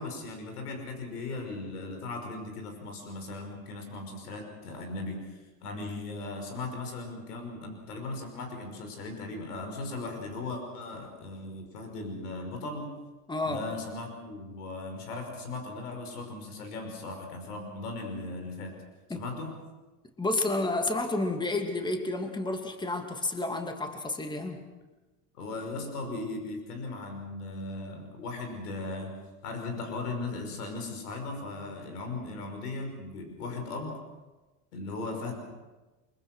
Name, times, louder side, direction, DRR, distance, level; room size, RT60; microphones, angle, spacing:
voice 1, 0.0-12.9 13.4-18.7 19.1-19.6 25.3-29.2 29.4-34.0 34.7-35.4, left 3 dB, 85° left, 4 dB, 5.7 m, -38 dB
voice 2, 13.3-13.6 19.1-19.2 20.2-24.6, left 2 dB, 10° left, 5 dB, 2.5 m, -30 dB
24.5 x 23.0 x 6.3 m, 1.2 s
hypercardioid pair, 100°, 45 cm